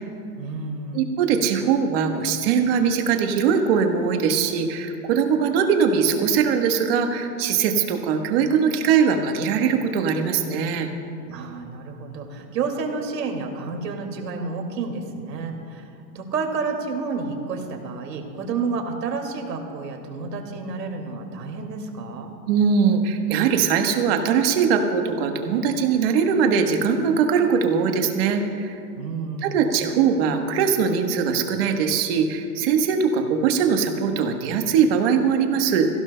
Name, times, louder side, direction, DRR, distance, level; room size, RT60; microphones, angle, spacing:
voice 1, 0.4-1.1 11.3-22.3 29.0-29.6, right 4 dB, 75° right, 3 dB, 2.4 m, -30 dB
voice 2, 0.9-10.9 22.5-28.7 29.4-35.9, right 6 dB, 35° right, 5 dB, 1.3 m, -21 dB
25.0 x 16.0 x 2.2 m, 2.5 s
hypercardioid pair, 150°, 50 cm